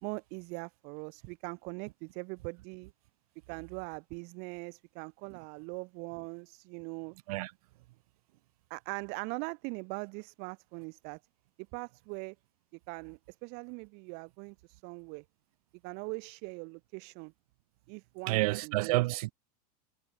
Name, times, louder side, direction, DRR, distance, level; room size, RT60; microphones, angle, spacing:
voice 1, 0.0-2.9 3.5-7.1 8.7-11.2 11.7-12.3 12.9-15.2 15.8-17.3 17.9-19.0, right 33 dB, 55° right, 1.2 m, -41 dB
voice 2, 18.3-19.3, right 20 dB, 70° right, 0.6 m, -29 dB
hypercardioid pair, 105°, 20 cm